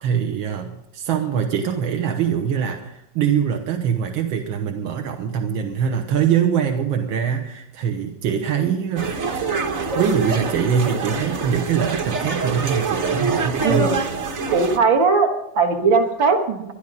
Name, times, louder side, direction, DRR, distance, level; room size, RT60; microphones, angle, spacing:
voice 1, 0.0-9.1 10.0-13.9, right 8 dB, 90° right, 4 dB, 1.8 m, -23 dB
sound 1, 9.0-14.8, right 3 dB, 45° right, 1.2 m, -25 dB
voice 2, 13.6-14.0 14.5-16.7, right 4 dB, 75° right, 4 dB, 2.4 m, -19 dB
21.5 x 12.0 x 4.0 m, 0.80 s
omnidirectional pair, 2.1 m